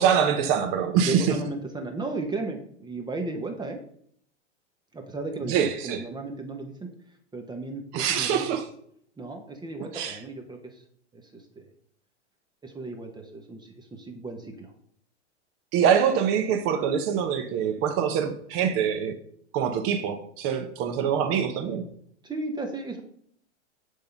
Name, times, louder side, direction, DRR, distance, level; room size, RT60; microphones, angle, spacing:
voice 1, 0.0-1.3 5.5-6.0 7.9-8.6 9.9-10.2 15.7-19.1 19.5-21.9, right 8 dB, 40° right, 7 dB, 1.0 m, -24 dB
voice 2, 1.1-3.8 4.9-5.5 5.8-6.9 7.3-8.5 9.2-10.8 11.1-11.7 12.6-14.7 22.2-23.0, right 3 dB, 10° right, 3 dB, 1.0 m, -35 dB
10.5 x 3.8 x 5.4 m, 0.65 s
hypercardioid pair, 110°, 36 cm